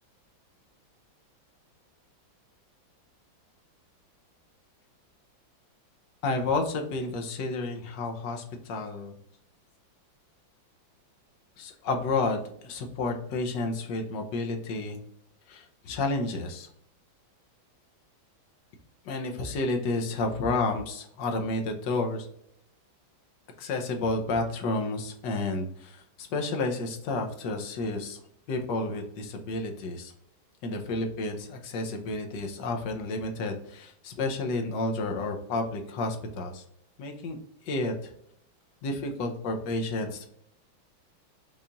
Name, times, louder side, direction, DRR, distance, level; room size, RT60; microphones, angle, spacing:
voice 1, 6.2-9.1 11.6-15.0 15.5-16.7 19.0-22.3 23.6-28.2 28.5-30.1 30.6-36.6 37.0-37.4 37.6-38.1 38.8-40.3, left 2 dB, 70° left, 3 dB, 1.3 m, -31 dB
5.6 x 2.4 x 3.9 m, 0.73 s
omnidirectional pair, 2.2 m